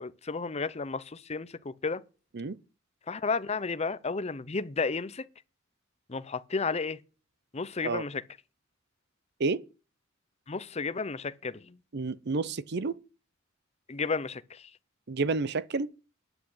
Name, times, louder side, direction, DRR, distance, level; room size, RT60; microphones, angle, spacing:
voice 1, 0.0-2.0 3.1-5.2 6.1-7.0 7.5-8.2 10.5-11.8 13.9-14.6, left 4 dB, 30° left, 0.6 m, -32 dB
voice 2, 11.9-13.0 15.1-15.9, right 3 dB, 55° right, 0.7 m, -30 dB
10.0 x 6.2 x 8.5 m
head